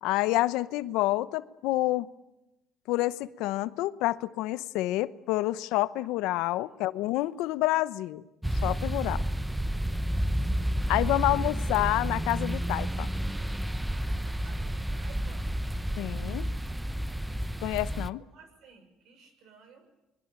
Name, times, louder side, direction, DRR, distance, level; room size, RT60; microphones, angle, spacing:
voice 1, 0.0-2.1 2.9-8.2 8.6-9.2 10.9-13.1 16.0-16.5 17.6-18.2, left 17 dB, 80° left, 15 dB, 0.9 m, -28 dB
sound 1, 8.4-18.1, right 1 dB, 5° right, 0.8 m, -30 dB
voice 2, 14.2-15.5 18.2-19.9, right 6 dB, 70° right, 9 dB, 6.2 m, -55 dB
25.5 x 22.0 x 9.1 m, 0.97 s
supercardioid pair, 95°, 0 cm